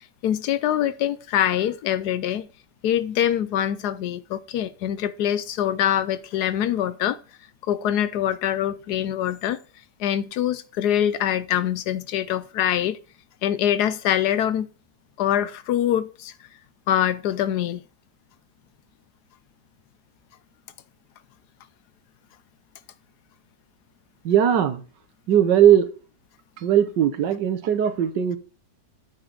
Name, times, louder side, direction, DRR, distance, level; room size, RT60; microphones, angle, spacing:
voice 1, 0.2-2.5 2.8-7.2 7.6-9.6 10.0-13.0 13.4-14.7 15.2-16.3 16.9-17.8, left 10 dB, 70° left, 1.1 m, -24 dB
voice 2, 24.2-24.8 25.3-25.9 26.6-28.4, right 10 dB, 80° right, 1.6 m, -19 dB
9.2 x 7.4 x 3.9 m
omnidirectional pair, 1.9 m